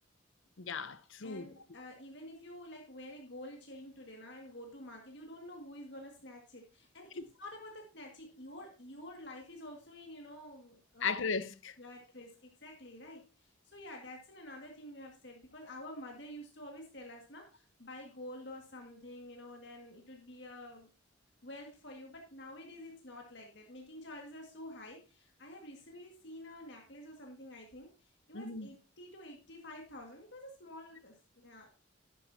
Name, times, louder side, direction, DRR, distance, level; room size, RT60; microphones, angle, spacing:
voice 1, 0.6-1.5 7.2-7.3 11.0-11.7 28.3-28.7, left 5 dB, 75° left, 0.8 m, -36 dB
voice 2, 1.2-11.1 11.8-20.9 21.4-31.7, left 1 dB, 55° left, 2.0 m, -49 dB
12.0 x 9.8 x 2.8 m
head